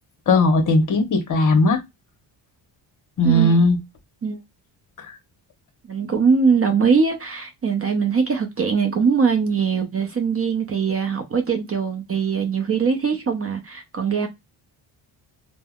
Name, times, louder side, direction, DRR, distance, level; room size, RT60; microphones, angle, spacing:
voice 1, 0.3-1.8 3.2-3.8 5.0-5.1, left 2 dB, 40° left, 0.8 m, -17 dB
voice 2, 3.2-3.6 4.2-4.4 5.8-14.3, right 5 dB, 30° right, 0.5 m, -21 dB
3.4 x 2.1 x 2.2 m
cardioid pair, 100°, 49 cm